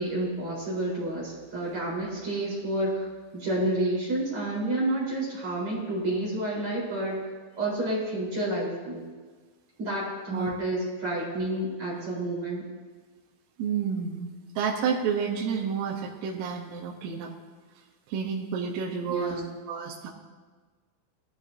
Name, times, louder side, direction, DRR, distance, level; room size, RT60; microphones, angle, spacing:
voice 1, 0.0-3.1 3.3-7.2 7.6-9.1 9.8-12.6 19.1-19.6, right 1 dB, 30° right, -6 dB, 4.5 m, -29 dB
voice 2, 13.6-17.3 18.1-19.4 19.7-20.1, right 6 dB, 75° right, -2 dB, 3.5 m, -30 dB
20.5 x 13.5 x 2.8 m, 1.4 s
omnidirectional pair, 6.0 m